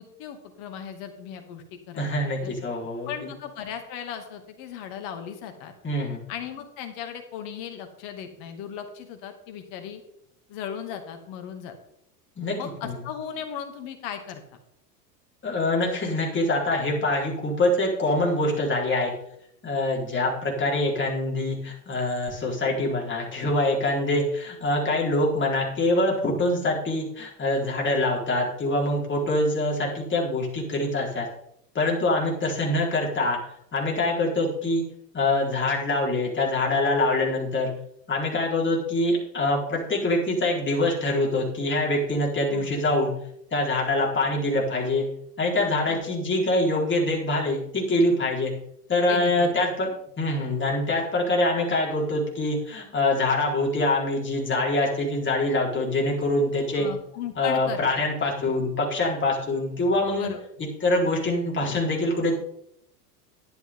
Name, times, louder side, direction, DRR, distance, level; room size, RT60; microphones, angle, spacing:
voice 1, 0.0-2.5 3.1-5.7 6.3-10.0 10.5-11.8 12.6-14.4 42.5-42.7 45.8-46.1 49.1-49.5 56.8-58.5 60.2-60.4, left 8 dB, 55° left, 6 dB, 2.6 m, -37 dB
voice 2, 2.0-3.1 5.8-6.2 12.4-12.6 12.8-12.9 15.4-19.1 19.6-31.3 31.7-33.4 33.7-34.8 35.1-37.7 38.1-43.1 43.5-45.1 45.4-48.5 48.9-56.9 57.4-60.3 60.6-62.3, left 2 dB, 25° left, -2 dB, 4.5 m, -24 dB
12.0 x 10.5 x 3.8 m, 0.74 s
hypercardioid pair, 90°, 48 cm